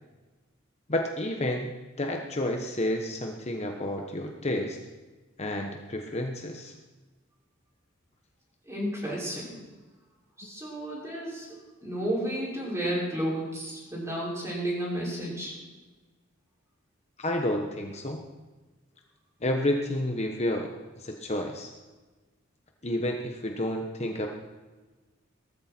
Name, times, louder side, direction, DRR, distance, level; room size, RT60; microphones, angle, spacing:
voice 1, 0.9-1.7 2.0-4.8 5.4-6.7 17.2-18.2 19.4-20.7 21.0-21.7 22.8-24.3, left 1 dB, 35° left, 2 dB, 1.1 m, -30 dB
voice 2, 8.7-9.6 10.4-15.5, right 1 dB, 15° right, -5 dB, 6.1 m, -32 dB
17.5 x 14.5 x 4.5 m, 1.2 s
head